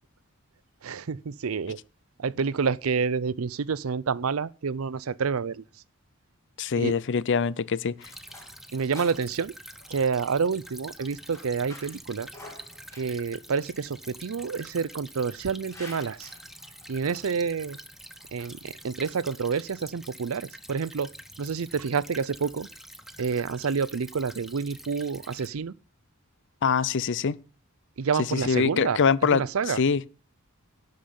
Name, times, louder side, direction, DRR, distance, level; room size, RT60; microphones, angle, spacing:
voice 1, 0.8-1.8 2.2-5.6 6.8-6.9 8.7-9.5 9.9-12.3 13.0-16.3 16.9-17.8 18.3-21.1 21.4-22.7 23.2-25.7 28.0-29.0 29.3-29.8, right 5 dB, 80° right, 0.6 m, -28 dB
voice 2, 6.6-8.1 26.6-27.4 28.3-29.4 29.8-30.0, left 5 dB, 60° left, 0.6 m, -24 dB
sound 1, 7.5-19.7, left 2 dB, 15° left, 5.7 m, -51 dB
Stream / Trickle dribble, 8.0-25.5, equal, ahead, 0.8 m, -47 dB
11.5 x 5.4 x 8.6 m
head